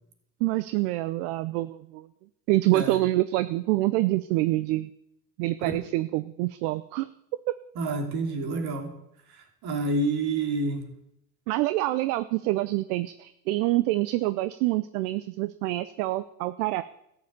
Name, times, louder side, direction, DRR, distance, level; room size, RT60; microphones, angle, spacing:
voice 1, 0.4-2.1 2.5-4.9 5.4-7.1 7.5-7.6 11.5-16.8, right 17 dB, 70° right, 13 dB, 0.7 m, -26 dB
voice 2, 7.8-8.9 9.6-10.9, right 2 dB, 55° right, 4 dB, 2.9 m, -28 dB
13.5 x 6.9 x 8.8 m, 0.81 s
hypercardioid pair, 80°, 47 cm